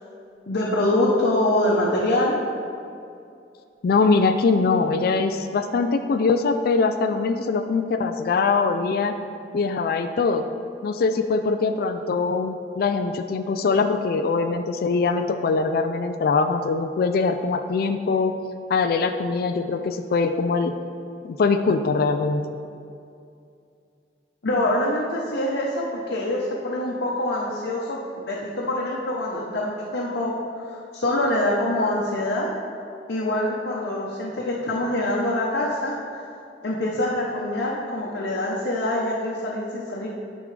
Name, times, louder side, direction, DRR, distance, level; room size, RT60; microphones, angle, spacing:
voice 1, 0.5-2.4 24.4-28.0 28.3-32.5 33.1-35.9 36.6-40.1, left 1 dB, 90° left, -5 dB, 0.9 m, -25 dB
voice 2, 3.8-9.1 9.5-10.4 10.8-18.3 18.7-20.7 21.2-22.4, left 4 dB, 60° left, 7 dB, 0.3 m, -22 dB
10.0 x 5.2 x 3.3 m, 2.5 s
head